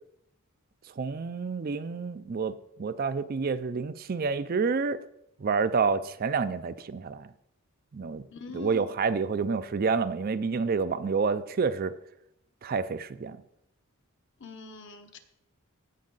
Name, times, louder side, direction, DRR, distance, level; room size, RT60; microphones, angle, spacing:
voice 1, 1.0-5.0 5.4-7.3 7.9-8.2 8.5-11.9 12.6-13.4, right 5 dB, 40° right, 12 dB, 0.4 m, -28 dB
voice 2, 8.3-8.9 14.4-15.2, left 4 dB, 55° left, 6 dB, 1.0 m, -43 dB
16.0 x 5.3 x 3.9 m, 0.77 s
head